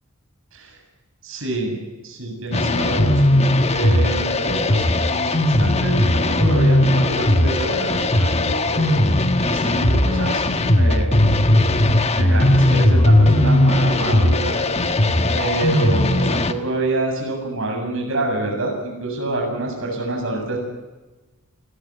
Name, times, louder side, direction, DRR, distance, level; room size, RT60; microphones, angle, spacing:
voice 1, 1.2-3.5 3.7-9.0 9.4-10.4 10.8-11.3 12.1-14.5 15.3-20.6, right 2 dB, 65° right, 1 dB, 7.5 m, -27 dB
sound 1, 2.5-16.5, left 1 dB, 30° left, 1.2 m, -17 dB
28.0 x 13.5 x 9.8 m, 1.2 s
head